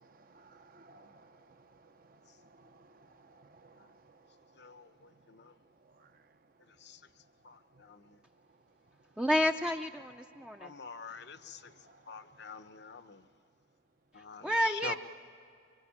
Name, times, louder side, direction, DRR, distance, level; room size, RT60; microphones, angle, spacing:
voice 1, 0.0-5.2 5.8-6.4 7.7-7.8 8.5-8.6 10.2-11.2 11.5-12.5, right 3 dB, 45° right, 0.8 m, -61 dB
voice 2, 4.5-5.5 6.7-7.1 7.4-8.2 10.6-11.7 12.1-13.3 14.1-15.0, left 5 dB, 60° left, 0.9 m, -47 dB
voice 3, 9.2-10.7 14.4-14.9, equal, 5° right, 0.6 m, -30 dB
24.5 x 23.5 x 8.7 m
head